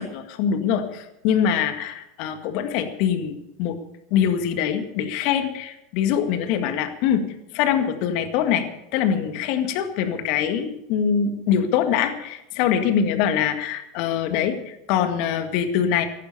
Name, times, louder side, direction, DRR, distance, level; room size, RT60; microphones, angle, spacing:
voice 1, 0.0-3.8 4.1-8.7 8.9-16.1, left 8 dB, 55° left, 7 dB, 1.9 m, -23 dB
15.0 x 11.5 x 6.9 m, 0.87 s
hypercardioid pair, 85°, 0 cm